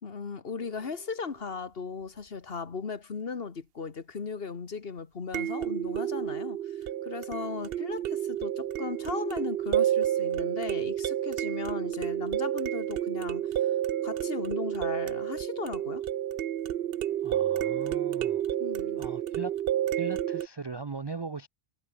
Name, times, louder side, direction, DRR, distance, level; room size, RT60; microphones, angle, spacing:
voice 1, 0.0-13.5 14.0-16.0 18.6-19.0, left 5 dB, 60° left, 1.7 m, -37 dB
sound 1, 0.6-0.7 5.3-20.5, right 11 dB, 65° right, 0.8 m, -30 dB
voice 2, 17.2-18.4 19.0-19.6 20.0-21.5, right 4 dB, 35° right, 0.4 m, -39 dB
omnidirectional pair, 1.1 m